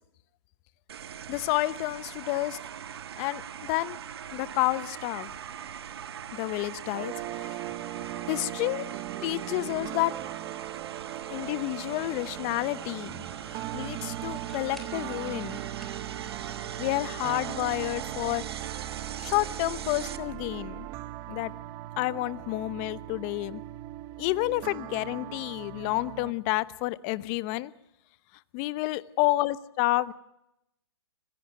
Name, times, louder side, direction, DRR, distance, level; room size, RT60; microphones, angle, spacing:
sound 1, 0.9-20.2, right 9 dB, 65° right, 1.4 m, -41 dB
voice 1, 1.3-2.6 3.2-3.4 3.7-4.0 4.3-5.3 6.3-7.6 8.3-8.9 9.2-10.1 11.3-15.6 16.8-18.4 19.2-20.9 21.3-21.5 22.0-23.6 24.2-27.7 28.5-30.1, left 19 dB, 30° left, 17 dB, 0.9 m, -30 dB
Krucifix Productions silence in prayer, 6.9-26.3, right 15 dB, 25° right, 0.9 m, -39 dB
sound 2, 14.4-15.0 15.5-16.1 16.4-17.4 18.3-19.2, left 1 dB, ahead, 3.5 m, -54 dB
25.0 x 16.5 x 9.0 m, 0.86 s
hypercardioid pair, 145°, 14 cm